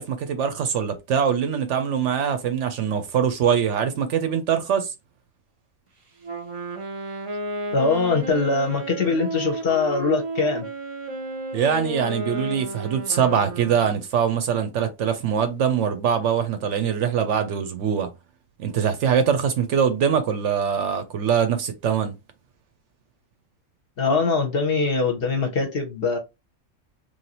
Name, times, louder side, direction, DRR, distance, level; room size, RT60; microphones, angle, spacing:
voice 1, 0.0-4.9 11.5-18.1 18.6-22.1, right 7 dB, 70° right, 0.8 m, -23 dB
Wind instrument woodwind instrument, 6.2-14.1, right 1 dB, 35° right, 0.5 m, -33 dB
voice 2, 7.7-10.6 24.0-26.2, left 4 dB, 55° left, 0.8 m, -22 dB
3.1 x 2.5 x 2.8 m
omnidirectional pair, 1.4 m